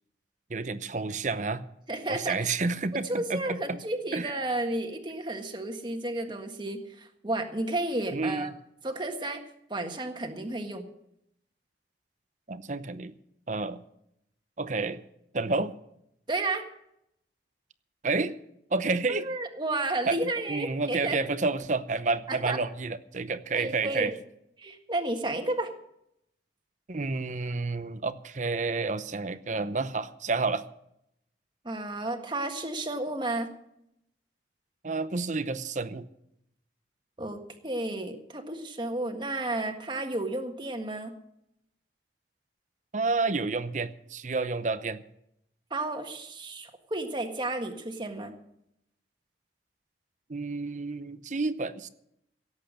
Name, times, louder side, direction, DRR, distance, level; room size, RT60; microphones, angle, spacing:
voice 1, 0.5-1.6 2.1-3.8 4.1-4.4 8.1-8.5 12.5-13.1 13.5-13.8 14.6-15.0 15.3-15.7 18.0-18.4 18.7-19.3 20.1-24.1 26.9-30.7 34.8-36.1 42.9-45.0 50.3-51.9, right 3 dB, 45° right, 12 dB, 0.8 m, -30 dB
voice 2, 1.9-2.4 2.9-8.5 8.8-9.4 9.7-10.8 16.3-16.6 19.1-21.2 22.3-22.6 23.5-24.1 24.6-25.7 31.6-33.5 37.2-41.1 45.7-48.3, right 2 dB, 25° right, 5 dB, 1.6 m, -32 dB
17.0 x 8.2 x 6.7 m, 0.77 s
head